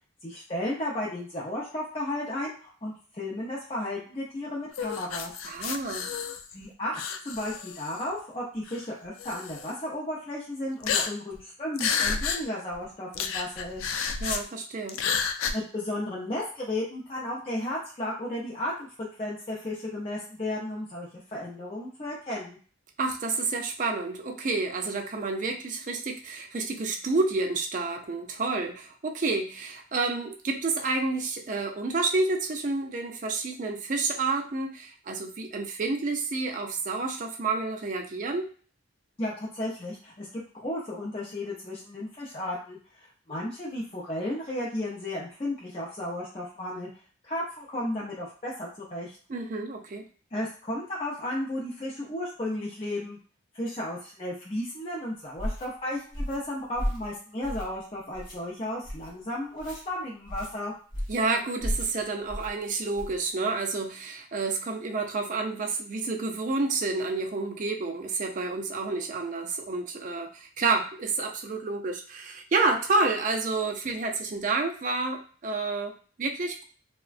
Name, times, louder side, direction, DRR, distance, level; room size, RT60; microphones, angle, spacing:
voice 1, 0.2-5.3 6.5-13.9 15.5-22.6 39.2-42.8 43.3-46.9 47.2-49.2 50.3-53.2 53.5-60.7, left 1 dB, 30° left, -5 dB, 0.5 m, -34 dB
sound 1, 4.7-6.6 7.0-8.1 8.7-8.8 9.2-9.7 10.8-11.4 11.8-12.4 12.7-12.8 13.1-14.4 14.9-15.5, left 6 dB, 85° left, 0.3 m, -30 dB
voice 2, 5.4-6.1 14.2-15.0 23.0-38.5 49.3-50.0 61.1-76.6, right 3 dB, 40° right, 3 dB, 0.4 m, -29 dB
sound 2, 55.4-55.7 56.1-56.4 56.8-57.1 57.4-57.8 58.1-58.4 58.8-59.1 59.6-59.8 60.3-60.5 60.9-61.2 61.6-61.9 62.3-62.5 62.9-63.2, equal, 45° left, 1.1 m, -33 dB
3.4 x 2.1 x 2.4 m, 0.40 s
head